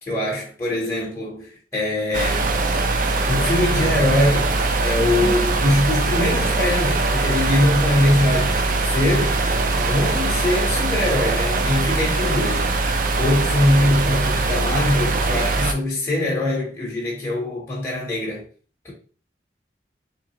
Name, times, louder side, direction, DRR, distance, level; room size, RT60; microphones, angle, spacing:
voice 1, 0.0-2.6 3.3-9.4 9.7-12.7 13.2-18.4 18.8-18.9, left 1 dB, 15° left, 0.9 m, -22 dB
sound 1, 2.1-15.7, right 3 dB, 50° right, 0.5 m, -21 dB
3.5 x 3.1 x 2.9 m
head